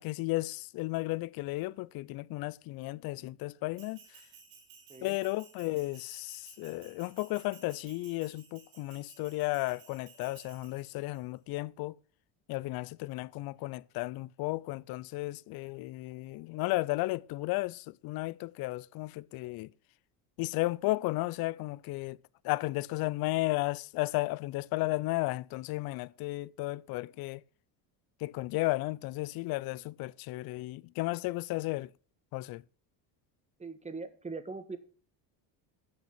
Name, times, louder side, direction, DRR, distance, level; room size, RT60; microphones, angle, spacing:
voice 1, 0.0-4.2 5.0-12.0 12.5-19.7 20.4-22.2 22.4-27.4 28.2-31.9 32.3-32.6, left 20 dB, 50° left, 0.5 m, -34 dB
Bell, 3.8-11.2, right 6 dB, 75° right, 3.3 m, -57 dB
voice 2, 33.6-34.8, right 4 dB, 15° right, 1.2 m, -41 dB
8.7 x 6.2 x 5.9 m
supercardioid pair, 90°, 49 cm